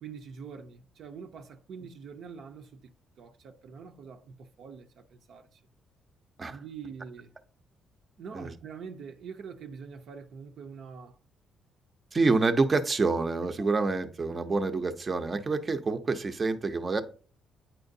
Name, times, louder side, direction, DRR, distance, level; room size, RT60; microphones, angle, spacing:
voice 1, 0.0-5.6 6.5-7.3 8.2-11.2 13.6-13.7, right 6 dB, 70° right, 0.6 m, -45 dB
voice 2, 12.1-17.0, right 3 dB, 35° right, 0.6 m, -27 dB
8.8 x 4.4 x 2.6 m
cardioid pair, 90°, 0 cm